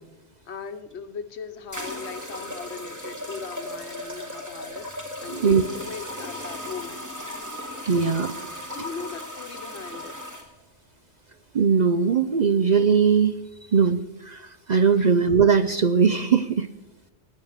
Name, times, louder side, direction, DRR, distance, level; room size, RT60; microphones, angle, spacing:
voice 1, 0.5-7.1 8.7-10.2 15.0-15.1, left 6 dB, 65° left, 10 dB, 1.2 m, -38 dB
sound 1, 0.9-1.0 1.7-10.5, left 1 dB, 15° right, 2.4 m, -36 dB
voice 2, 5.3-5.6 7.9-8.5 11.5-13.4 13.7-16.7, right 6 dB, 50° right, 11 dB, 0.6 m, -20 dB
17.5 x 9.5 x 6.5 m, 1.1 s
omnidirectional pair, 1.2 m